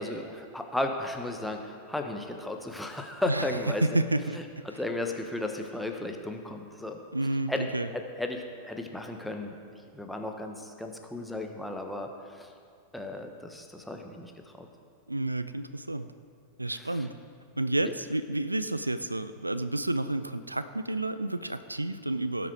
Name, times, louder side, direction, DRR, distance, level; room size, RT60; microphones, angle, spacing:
voice 1, 0.0-4.0 4.6-7.0 7.5-7.6 7.9-9.5 9.9-12.5 12.9-14.3 14.6-14.7 16.9-17.0, left 1 dB, 5° left, 3 dB, 1.0 m, -34 dB
voice 2, 3.3-4.4 7.1-7.9 15.1-16.1 16.6-17.1 17.6-22.5, right 2 dB, 85° right, 13 dB, 0.3 m, -30 dB
17.5 x 6.1 x 4.6 m, 2.2 s
figure-of-eight pair, 90°, 0 cm